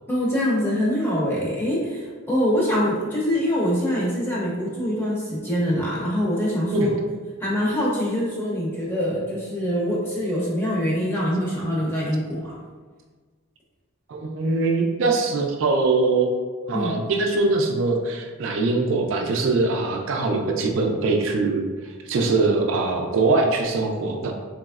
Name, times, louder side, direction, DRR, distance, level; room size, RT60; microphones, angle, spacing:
voice 1, 0.1-6.9 7.4-12.5 16.7-16.9, equal, 10° left, -6 dB, 0.7 m, -24 dB
voice 2, 14.1-16.3 16.7-21.7 22.1-24.3, right 3 dB, 65° right, 3 dB, 0.4 m, -22 dB
3.4 x 3.0 x 2.3 m, 1.4 s
head